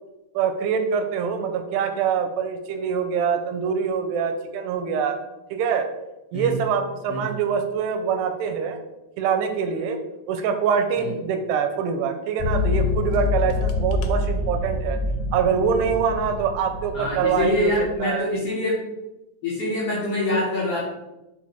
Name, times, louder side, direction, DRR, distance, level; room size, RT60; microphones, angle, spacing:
voice 1, 0.3-5.2 5.5-5.9 6.3-8.8 9.2-10.0 10.3-15.0 15.3-17.7 18.0-18.3, right 7 dB, 90° right, 7 dB, 2.7 m, -24 dB
sound 1, 12.4-18.0, left 3 dB, 85° left, 2.8 m, -26 dB
voice 2, 16.9-18.8 19.4-20.8, left 1 dB, 55° left, -7 dB, 1.6 m, -25 dB
6.1 x 4.5 x 4.2 m, 0.97 s
omnidirectional pair, 4.8 m